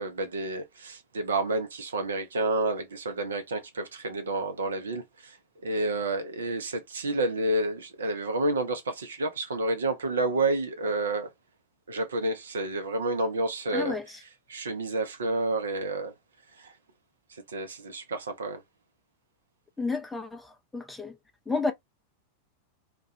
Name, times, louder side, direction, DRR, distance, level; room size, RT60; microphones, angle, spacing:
voice 1, 0.0-5.4 5.6-11.3 11.9-14.0 14.5-16.1 16.6-16.7 17.3-18.6, right 2 dB, 70° right, 0.6 m, -30 dB
voice 2, 13.7-14.2 19.8-21.2 21.5-21.7, left 4 dB, 5° left, 0.5 m, -31 dB
2.3 x 2.2 x 2.5 m
figure-of-eight pair, 90°, 0 cm